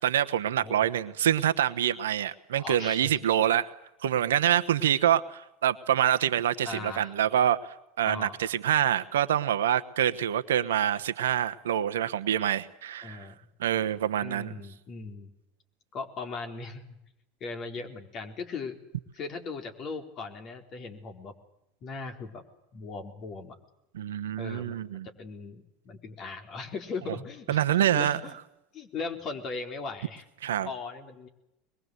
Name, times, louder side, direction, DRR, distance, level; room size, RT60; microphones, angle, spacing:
voice 1, 0.0-3.7 4.0-13.3 13.6-14.5 23.9-25.1 27.5-28.2 30.4-30.7, right 10 dB, 80° right, 11 dB, 1.1 m, -26 dB
voice 2, 2.6-3.2 6.7-7.1 8.0-8.5 13.0-13.4 14.2-15.3 15.9-17.0 17.4-18.8 19.1-21.3 21.8-22.4 22.7-23.6 24.4-24.8 25.1-27.6 27.9-28.3 28.7-30.2 30.6-31.3, left 4 dB, 45° left, 5 dB, 4.3 m, -38 dB
24.0 x 22.0 x 8.1 m, 0.87 s
hypercardioid pair, 85°, 0 cm